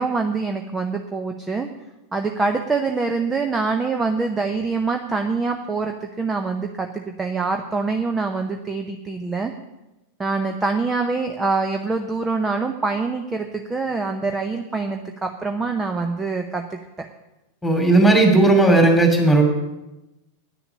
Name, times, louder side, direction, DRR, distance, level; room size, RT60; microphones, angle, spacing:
voice 1, 0.0-1.7 2.1-9.5 10.2-17.1, right 4 dB, 15° right, 5 dB, 0.8 m, -25 dB
voice 2, 17.6-19.4, right 2 dB, 5° left, 3 dB, 2.7 m, -15 dB
10.0 x 6.9 x 8.7 m, 0.98 s
figure-of-eight pair, 90°, 0 cm